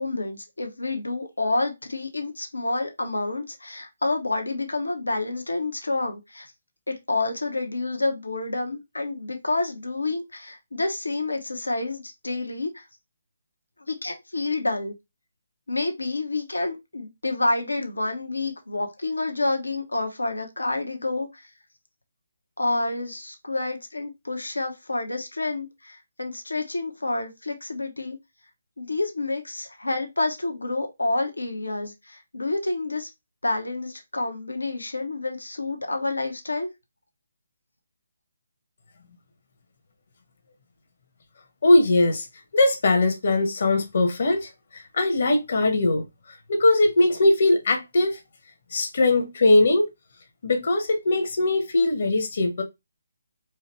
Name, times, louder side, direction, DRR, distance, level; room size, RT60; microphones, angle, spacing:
voice 1, 0.0-6.5 6.9-12.9 13.9-14.9 15.7-21.4 22.6-28.2 28.8-33.1 33.4-36.7, left 2 dB, 75° left, 1.0 m, -28 dB
voice 2, 41.6-42.3 42.5-46.0 46.5-48.2 48.7-49.9 50.4-52.6, left 2 dB, 50° left, 1.1 m, -20 dB
4.6 x 2.9 x 3.0 m
figure-of-eight pair, 145°, 0 cm